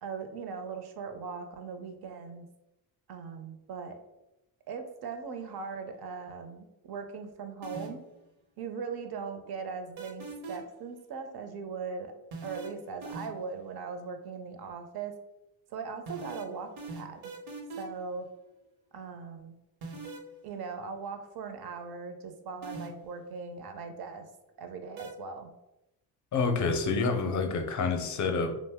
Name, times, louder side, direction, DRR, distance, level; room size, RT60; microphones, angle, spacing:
voice 1, 0.0-2.5 3.1-4.0 4.7-8.0 8.6-12.1 12.4-15.1 15.7-17.3 17.8-18.3 18.9-19.6 20.4-24.3 24.6-25.5, right 5 dB, 55° right, 7 dB, 0.6 m, -39 dB
sound 1, 7.6-8.1 10.0-10.8 12.3-13.5 16.1-18.1 19.8-20.3 22.6-23.2 25.0-25.1, right 3 dB, 75° right, 0.9 m, -41 dB
voice 2, 26.3-28.5, left 4 dB, 40° left, 5 dB, 0.5 m, -28 dB
2.6 x 2.1 x 3.4 m, 0.91 s
cardioid pair, 75°, 47 cm